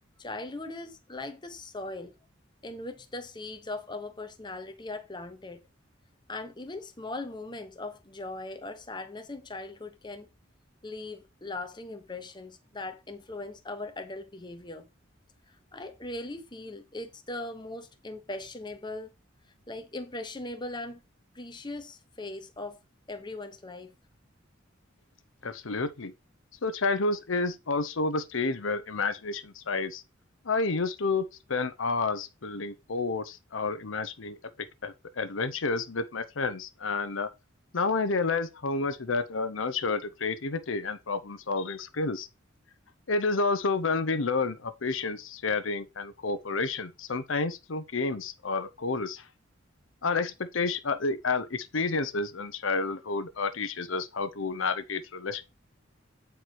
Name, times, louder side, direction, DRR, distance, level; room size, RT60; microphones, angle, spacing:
voice 1, 0.2-2.2 2.6-5.6 6.3-10.3 10.8-14.9 15.5-19.1 19.7-21.0 21.3-22.8 23.1-23.9, left 2 dB, 20° left, 1.1 m, -39 dB
voice 2, 25.4-26.1 26.6-30.0 30.4-37.3 37.7-42.3 43.1-49.3 50.0-55.4, left 3 dB, 75° left, 0.8 m, -30 dB
8.5 x 4.7 x 4.6 m
head